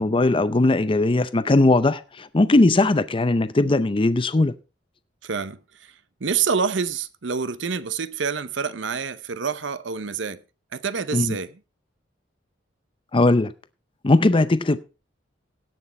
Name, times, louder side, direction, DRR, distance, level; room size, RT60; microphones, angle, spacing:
voice 1, 0.0-4.5 11.1-11.4 13.1-13.5 14.0-14.8, left 2 dB, 25° left, 0.5 m, -19 dB
voice 2, 5.2-5.6 6.2-10.4 10.7-11.5, right 6 dB, 70° right, 0.8 m, -27 dB
17.0 x 6.2 x 4.3 m
head